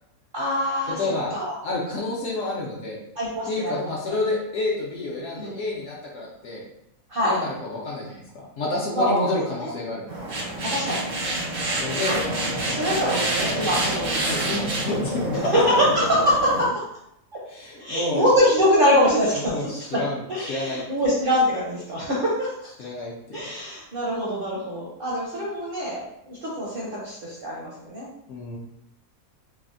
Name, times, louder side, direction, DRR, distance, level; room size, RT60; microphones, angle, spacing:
voice 1, 0.3-1.0 1.3-1.5 3.2-4.1 5.4-5.5 7.1-7.4 8.9-9.2 9.6-9.7 10.7-11.1 12.1-12.2 12.7-14.1 15.5-15.6 15.9-16.1 16.6-16.7 17.8-19.8 20.3-22.5 23.3-28.1, equal, 55° right, -5 dB, 0.6 m, -24 dB
voice 2, 0.9-1.3 1.6-3.0 3.5-6.6 7.2-8.2 8.6-10.1 11.8-12.2 14.2-16.1 17.5-18.3 19.3-20.8 22.8-23.1 28.3-28.6, left 2 dB, 70° left, -4 dB, 0.9 m, -29 dB
sound 1, 10.1-16.7, right 1 dB, 90° right, 1.4 m, -27 dB
3.2 x 2.1 x 2.4 m, 0.80 s
omnidirectional pair, 1.5 m